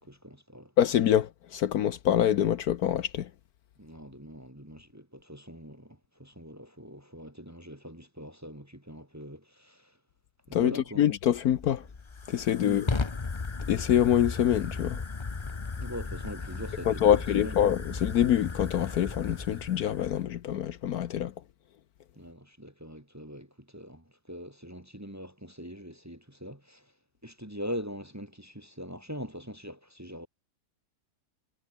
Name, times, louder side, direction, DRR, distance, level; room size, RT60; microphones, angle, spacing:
voice 1, 0.0-0.7 3.8-10.0 10.5-11.1 12.6-12.9 15.8-17.5 22.1-26.9 27.2-30.3, equal, 10° right, 1.7 m, -42 dB
voice 2, 0.8-3.3 10.5-11.9 12.3-12.9 13.7-15.0 16.9-21.3, left 10 dB, 65° left, 1.2 m, -25 dB
Fire, 11.3-20.3, left 4 dB, 25° left, 0.6 m, -36 dB
omnidirectional pair, 1.8 m